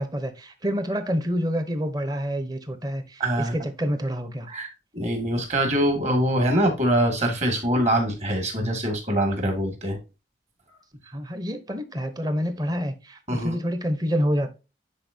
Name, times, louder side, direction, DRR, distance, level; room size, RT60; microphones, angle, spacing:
voice 1, 0.0-4.5 11.1-14.5, equal, 20° right, 0.9 m, -27 dB
voice 2, 3.2-3.5 4.5-4.7 4.9-10.0 13.3-13.6, right 1 dB, 40° right, 2.2 m, -23 dB
9.8 x 4.5 x 2.7 m
head